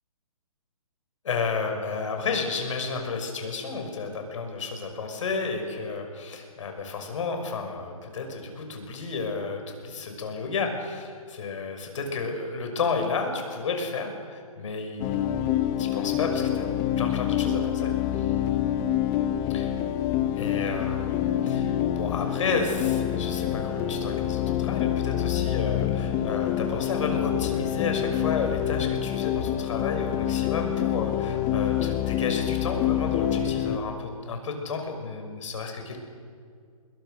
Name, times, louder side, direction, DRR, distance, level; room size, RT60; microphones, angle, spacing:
voice 1, 1.2-16.7 17.0-18.3 19.5-19.7 20.4-36.0, left 4 dB, 55° left, 4 dB, 6.1 m, -32 dB
sound 1, 15.0-33.8, left 11 dB, 20° left, 0.9 m, -27 dB
28.5 x 22.0 x 6.6 m, 2.2 s
hypercardioid pair, 150°, 19 cm